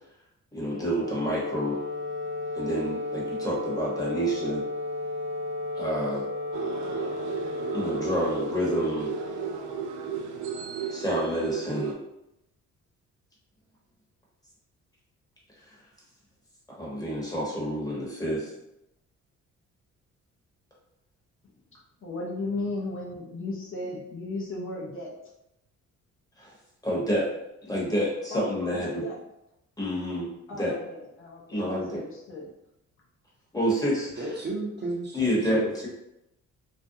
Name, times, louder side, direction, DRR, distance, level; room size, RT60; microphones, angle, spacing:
voice 1, 0.5-1.8 2.5-4.6 5.8-6.3 7.7-9.1 10.9-12.0 16.7-18.5 26.4-26.5 26.8-27.3 27.6-29.0 29.8-30.7 31.5-32.0 33.5-34.1 35.1-35.9, equal, 10° left, -5 dB, 1.0 m, -28 dB
Wind instrument woodwind instrument, 0.6-9.9, left 2 dB, 75° left, 1.0 m, -34 dB
sound 1, 6.5-11.9, right 6 dB, 75° right, 0.5 m, -34 dB
voice 2, 22.0-25.1 28.3-29.2 30.5-32.5, left 2 dB, 45° left, -4 dB, 0.6 m, -35 dB
voice 3, 34.2-35.9, right 2 dB, 35° right, -4 dB, 0.8 m, -34 dB
2.5 x 2.1 x 2.7 m, 0.86 s
cardioid pair, 90°, 30 cm